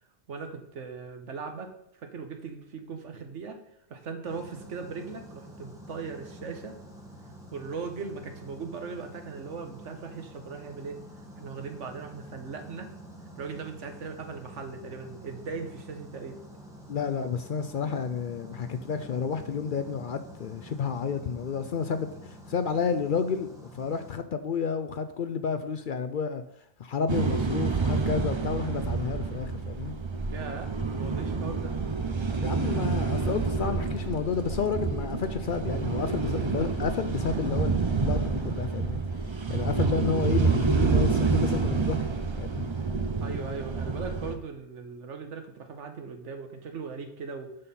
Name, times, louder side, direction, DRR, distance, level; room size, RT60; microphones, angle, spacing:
voice 1, 0.3-3.6 3.9-6.8 7.5-11.0 11.4-12.9 13.4-16.4 30.3-31.8 43.2-47.5, right 5 dB, 85° right, 1.4 m, -39 dB
sound 1, 4.2-24.1, equal, 5° right, 1.6 m, -47 dB
voice 2, 16.9-26.4 26.8-29.9 32.4-39.0 39.5-42.0 42.4-42.7, left 6 dB, 60° left, 0.6 m, -31 dB
sound 2, 27.1-44.4, right 4 dB, 30° right, 0.6 m, -28 dB
10.5 x 5.6 x 4.2 m
omnidirectional pair, 1.2 m